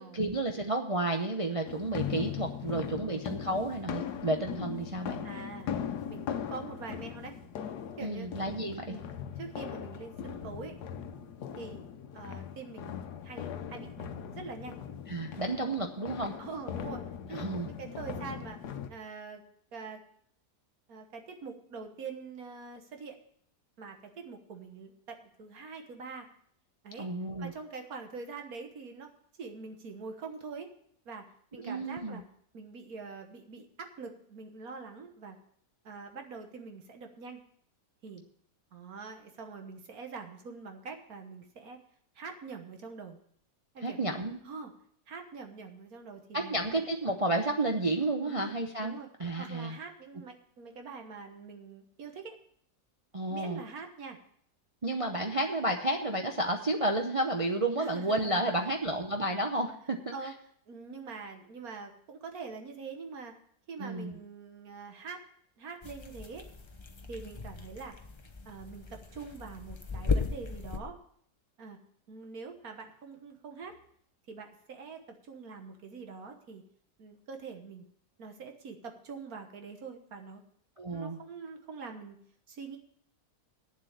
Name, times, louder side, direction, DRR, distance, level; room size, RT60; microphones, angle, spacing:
voice 1, 0.0-5.3 8.0-9.0 15.1-16.3 17.3-17.7 27.0-27.5 31.6-32.2 43.8-44.4 46.3-49.8 53.1-53.6 54.8-60.1 63.8-64.2 80.8-81.2, right 2 dB, 30° right, 2 dB, 0.7 m, -31 dB
sound 1, 1.7-18.9, left 8 dB, 85° left, 1.4 m, -39 dB
voice 2, 2.6-3.2 5.2-5.7 6.1-7.4 8.0-8.3 8.9-9.1 9.4-10.8 11.5-11.8 12.1-14.8 16.4-17.5 17.8-18.6 18.9-19.4 19.7-20.0 20.9-23.2 23.8-26.3 26.8-27.1 27.4-29.1 29.4-30.7 31.0-32.2 32.5-35.4 35.8-37.4 38.0-38.2 38.7-41.8 42.1-43.2 43.7-44.0 44.4-44.7 45.1-46.6 48.2-48.6 48.8-49.1 49.4-52.4 53.3-54.2 57.8-58.7 60.1-60.3 60.7-63.3 63.7-65.2 65.6-66.5 67.1-68.0 68.4-71.0 71.6-71.8 72.1-73.8 74.3-76.6 77.0-77.8 78.2-80.4 80.9-82.2 82.5-82.8, right 4 dB, 65° right, 4 dB, 1.7 m, -44 dB
sound 2, 65.8-70.8, left 4 dB, 30° left, 0.6 m, -36 dB
8.9 x 7.6 x 8.1 m, 0.66 s
omnidirectional pair, 1.7 m